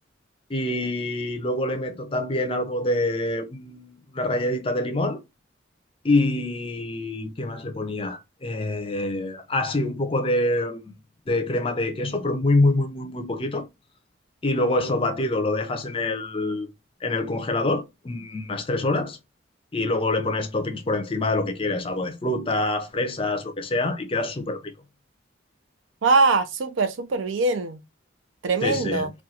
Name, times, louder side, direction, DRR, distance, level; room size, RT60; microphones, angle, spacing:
voice 1, 0.5-5.2 6.0-10.9 11.3-13.7 14.4-16.7 17.0-19.2 19.7-24.6 28.6-29.1, left 2 dB, 30° left, 0.5 m, -25 dB
voice 2, 26.0-27.8 28.4-29.1, right 3 dB, 90° right, 0.5 m, -22 dB
2.4 x 2.2 x 2.8 m
head